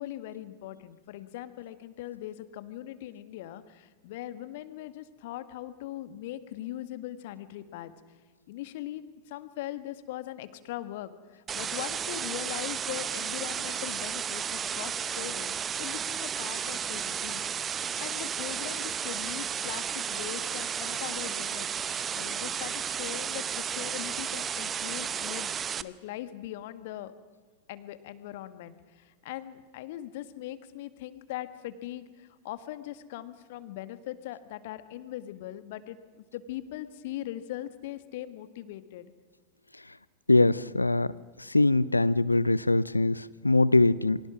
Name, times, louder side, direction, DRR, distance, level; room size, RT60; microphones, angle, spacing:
voice 1, 0.0-7.9 8.5-17.4 18.0-21.7 22.1-25.5 25.8-27.1 27.7-39.1, left 13 dB, 50° left, 12 dB, 1.7 m, -40 dB
sound 1, 11.5-25.8, right 8 dB, 25° right, 0.9 m, -33 dB
voice 2, 40.3-41.1 41.4-44.2, left 2 dB, 85° left, 20 dB, 0.7 m, -22 dB
28.5 x 24.5 x 6.1 m, 1.4 s
figure-of-eight pair, 90°, 0 cm